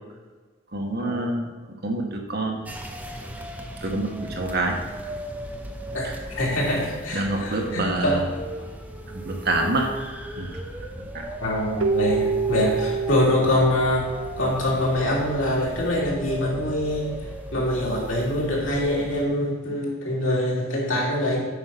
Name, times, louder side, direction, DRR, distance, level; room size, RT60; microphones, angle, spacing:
voice 1, 0.7-1.5 1.8-2.7 3.8-4.8 6.0-6.1 7.1-8.2 9.1-9.9 10.4-10.5 11.1-11.3, right 2 dB, 55° right, 2 dB, 1.4 m, -26 dB
sound 1, 2.7-19.3, equal, 10° right, 0.8 m, -37 dB
voice 2, 5.9-8.2 11.4-14.1 14.4-17.2 17.5-21.5, left 1 dB, 80° left, -4 dB, 3.0 m, -24 dB
Keyboard (musical), 11.8-15.1, right 5 dB, 75° right, 0.5 m, -27 dB
8.7 x 5.4 x 6.0 m, 1.4 s
head